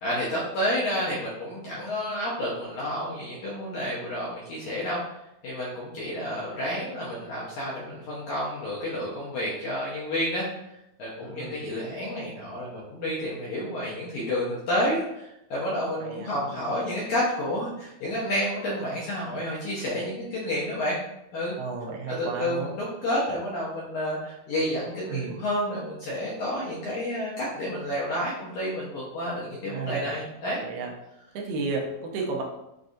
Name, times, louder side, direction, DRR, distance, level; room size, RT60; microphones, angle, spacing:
voice 1, 0.0-5.0 5.4-10.5 11.0-21.0 21.3-21.6 22.1-30.6, equal, 80° left, -6 dB, 1.7 m, -30 dB
voice 2, 11.2-11.6 16.0-16.6 21.6-22.7 25.1-25.4 29.7-30.2 30.6-30.9 31.3-32.4, right 4 dB, 80° right, 0 dB, 2.2 m, -33 dB
6.3 x 2.3 x 2.6 m, 0.86 s
omnidirectional pair, 4.2 m